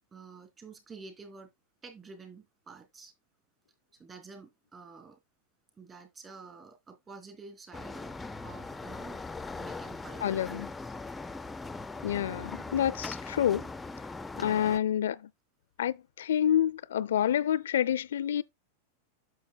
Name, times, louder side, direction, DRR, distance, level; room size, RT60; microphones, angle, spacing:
voice 1, 0.1-1.5 1.8-3.1 4.0-5.2 5.8-8.2 8.4-9.2 9.6-10.9 14.3-14.7, right 4 dB, 25° right, 2.9 m, -49 dB
sound 1, 7.7-14.8, left 3 dB, 10° left, 0.4 m, -40 dB
voice 2, 10.2-10.7 12.0-13.7 14.4-15.3 15.8-18.4, left 10 dB, 70° left, 0.4 m, -28 dB
9.5 x 6.6 x 2.3 m
hypercardioid pair, 95°, 0 cm